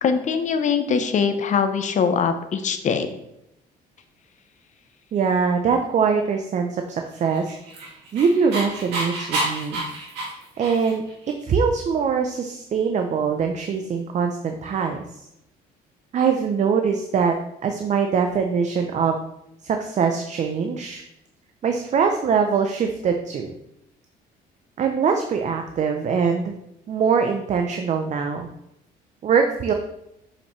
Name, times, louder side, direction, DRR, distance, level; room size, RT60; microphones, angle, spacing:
voice 1, 0.0-3.1, left 6 dB, 45° left, 8 dB, 0.9 m, -22 dB
voice 2, 5.1-7.6 8.1-9.8 10.6-11.0 11.4-15.2 16.1-17.3 17.6-19.2 19.6-21.0 21.6-23.5 24.8-26.5 26.9-28.5 29.2-29.7, right 6 dB, 45° right, 5 dB, 0.7 m, -22 dB
Dog, 7.3-11.1, right 2 dB, 80° right, 2.3 m, -29 dB
6.9 x 5.8 x 3.2 m, 0.82 s
cardioid pair, 110°, 17 cm